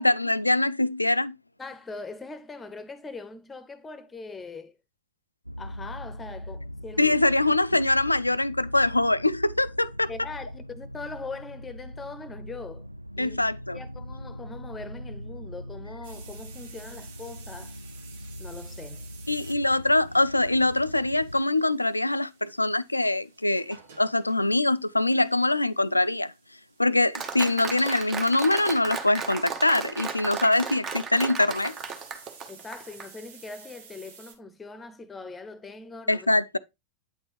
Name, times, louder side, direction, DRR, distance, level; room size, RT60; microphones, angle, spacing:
voice 1, 0.0-1.3 7.0-10.1 13.2-13.8 19.3-26.3 26.8-31.8 36.1-36.6, left 2 dB, 85° left, 0.3 m, -23 dB
voice 2, 1.6-4.8 5.6-7.2 10.1-12.9 13.2-13.4 13.7-17.8 18.4-19.1 32.5-36.3, left 3 dB, 15° left, 0.8 m, -41 dB
sound 1, 5.4-21.4, equal, 90° right, 0.3 m, -41 dB
sound 2, 16.0-29.6 31.5-34.4, right 6 dB, 60° right, 1.3 m, -53 dB
Applause, 27.1-33.1, right 5 dB, 25° right, 1.0 m, -35 dB
8.9 x 4.4 x 3.2 m
figure-of-eight pair, 90°, 0 cm